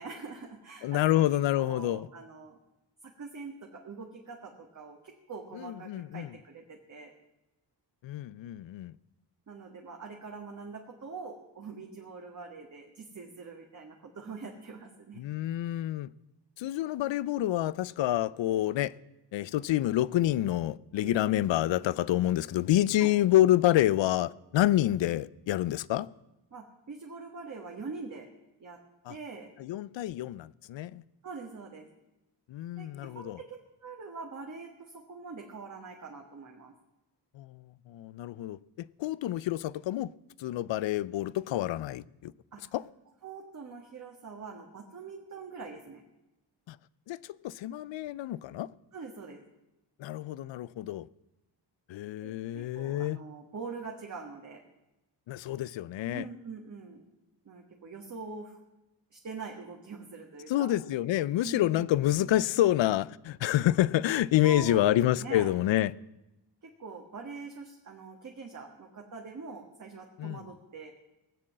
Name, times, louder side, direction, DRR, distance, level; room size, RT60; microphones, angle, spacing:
voice 1, 0.0-1.2 1.6-2.6 3.0-7.1 9.5-15.2 21.0-21.7 23.0-23.1 26.5-28.3 28.6-28.8 29.1-29.5 31.2-31.9 32.8-36.7 42.5-42.6 43.2-46.0 48.9-49.4 52.2-54.6 56.1-57.0 57.4-58.6 59.1-60.7 61.4-61.9 64.4-65.5 66.6-70.9, right 4 dB, 40° right, 1.6 m, -44 dB
voice 2, 0.8-2.1 5.9-6.3 8.0-8.9 15.2-16.1 16.6-18.9 19.3-26.1 29.1-29.2 29.6-31.0 32.5-33.4 37.4-37.6 37.9-40.1 40.4-42.3 42.7-42.8 46.7-46.8 47.1-48.7 50.0-51.1 51.9-53.2 55.3-56.2 60.5-65.9 70.2-70.4, left 14 dB, 90° left, 0.5 m, -28 dB
18.5 x 7.7 x 7.4 m
wide cardioid pair, 135°, 43 cm